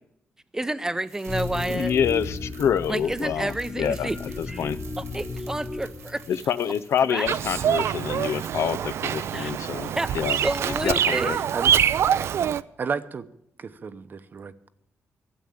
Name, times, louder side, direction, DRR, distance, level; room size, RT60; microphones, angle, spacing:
voice 1, 0.5-1.9 2.9-4.2 4.5-4.7 5.0-6.2 7.1-7.3 9.3-9.5 10.0-10.1 10.4-11.4, right 2 dB, 10° right, 13 dB, 0.6 m, -29 dB
sound 1, 1.0-11.0 11.3-11.4, right 7 dB, 85° right, 1.9 m, -50 dB
sound 2, 1.3-6.6, left 3 dB, 20° left, 1.5 m, -35 dB
voice 2, 1.7-4.8 6.3-10.4 10.7-11.4, left 8 dB, 70° left, 15 dB, 0.5 m, -27 dB
Bird vocalization bird call bird song, 7.3-12.6, right 9 dB, 70° right, 0.4 m, -25 dB
voice 3, 11.2-11.8 12.8-13.3 13.6-14.7, right 5 dB, 45° right, 12 dB, 0.8 m, -33 dB
13.0 x 8.1 x 8.7 m, 0.74 s
cardioid pair, 125°, 5 cm